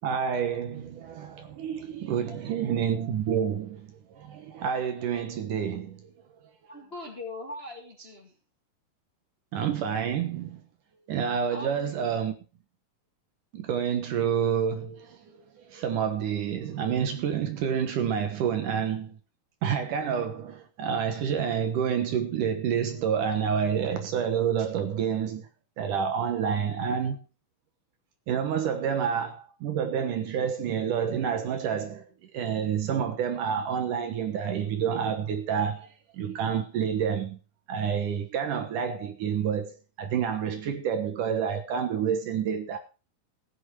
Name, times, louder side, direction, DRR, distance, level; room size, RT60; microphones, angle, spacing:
voice 1, 0.0-6.1 9.5-10.6 11.1-12.4 13.5-19.2 19.6-25.5 25.8-27.2 28.3-32.0 32.3-37.4 37.7-42.8, right 7 dB, 65° right, 2.6 m, -28 dB
voice 2, 2.2-2.7 6.7-8.3 11.5-11.7, left 2 dB, 20° left, 1.9 m, -41 dB
15.5 x 9.2 x 4.7 m
omnidirectional pair, 4.2 m